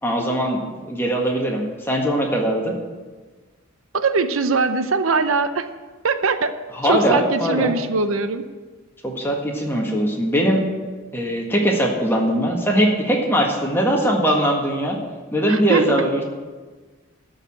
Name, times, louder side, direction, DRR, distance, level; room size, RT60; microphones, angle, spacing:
voice 1, 0.0-2.7 6.8-7.7 9.0-10.7 11.1-15.0 15.3-16.2, equal, 10° left, -1 dB, 1.6 m, -21 dB
voice 2, 3.9-5.7 6.0-6.5 6.8-8.5 15.5-16.1, right 4 dB, 75° right, 10 dB, 0.7 m, -21 dB
13.0 x 4.9 x 8.9 m, 1.3 s
head